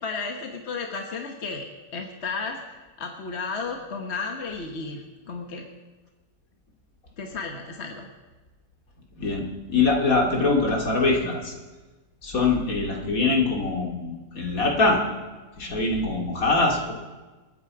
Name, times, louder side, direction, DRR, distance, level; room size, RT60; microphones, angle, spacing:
voice 1, 0.0-5.7 7.2-8.1, left 4 dB, 45° left, 3 dB, 1.4 m, -33 dB
voice 2, 9.2-11.5 12.2-15.0 15.6-16.9, left 3 dB, 65° left, 0 dB, 2.8 m, -23 dB
28.0 x 9.5 x 4.8 m, 1.2 s
omnidirectional pair, 1.6 m